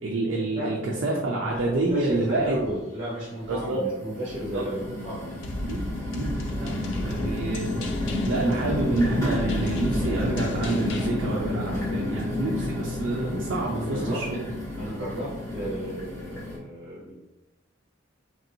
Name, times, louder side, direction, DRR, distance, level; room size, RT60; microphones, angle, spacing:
voice 1, 0.0-2.6 3.5-3.8 4.5-4.6 5.6-7.7 8.3-14.4, right 2 dB, 65° right, -2 dB, 0.4 m, -28 dB
voice 2, 1.3-5.4 13.7-14.2 14.8-17.1, right 1 dB, 30° right, -7 dB, 0.8 m, -34 dB
sound 1, 1.6-1.7 2.1-2.7 3.4-16.6, left 1 dB, 15° left, 1.1 m, -31 dB
sound 2, 5.4-11.1, left 1 dB, 65° left, 0.4 m, -35 dB
3.0 x 2.6 x 2.7 m, 1.1 s
head